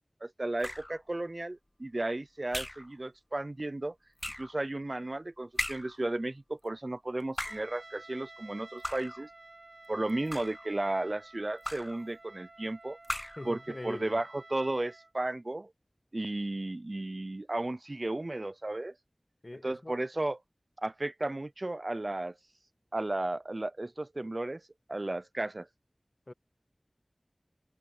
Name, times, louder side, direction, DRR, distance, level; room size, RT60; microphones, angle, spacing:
voice 1, 0.2-3.9 4.4-9.3 9.9-13.0 13.4-13.6 13.8-15.7 16.1-18.9 19.6-20.4 20.8-22.4 22.9-24.6 24.9-25.7, right 2 dB, 50° right, 0.5 m, -34 dB
sound 1, 0.6-1.0 2.5-2.9 4.2-4.6 5.6-6.0 7.2-7.8 8.8-9.3 10.1-10.7 11.6-12.0 13.0-13.5, left 1 dB, 25° left, 1.2 m, -38 dB
Trumpet, 7.4-15.1, right 2 dB, 75° right, 4.0 m, -52 dB
voice 2, 13.4-14.2 19.4-20.0 26.3-26.4, left 2 dB, 45° left, 1.5 m, -42 dB
wide cardioid pair, 45°, 0 cm